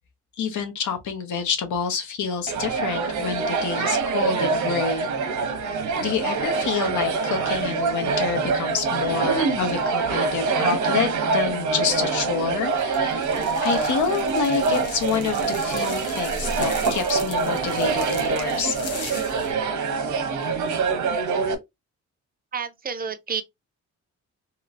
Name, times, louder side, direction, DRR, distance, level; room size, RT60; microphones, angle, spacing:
voice 1, 0.4-5.1 6.0-13.3 13.6-18.7, left 6 dB, 80° left, 1.0 m, -28 dB
sound 1, 2.5-21.5, right 4 dB, 75° right, 0.8 m, -25 dB
sound 2, 12.7-19.5, left 3 dB, 55° left, 0.9 m, -38 dB
voice 2, 22.5-23.4, right 6 dB, 30° right, 0.4 m, -30 dB
3.0 x 2.9 x 2.5 m
cardioid pair, 125°, 30 cm